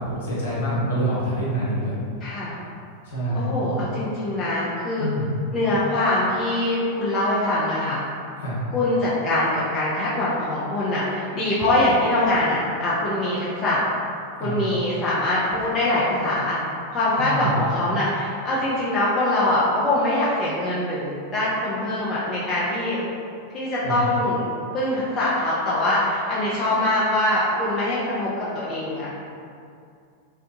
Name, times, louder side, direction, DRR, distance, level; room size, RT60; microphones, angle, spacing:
voice 1, 0.0-1.9 3.1-3.8 5.0-5.3 8.4-8.6 14.4-14.5 17.2-17.5 23.8-24.0, right 1 dB, 65° left, -9 dB, 0.9 m, -26 dB
voice 2, 2.2-2.5 3.3-5.1 5.5-8.0 8.7-13.8 14.4-16.6 16.9-23.0 23.5-24.4 24.7-29.2, left 1 dB, 25° left, -8 dB, 0.5 m, -23 dB
2.7 x 2.3 x 2.5 m, 2.3 s
figure-of-eight pair, 90°, 0 cm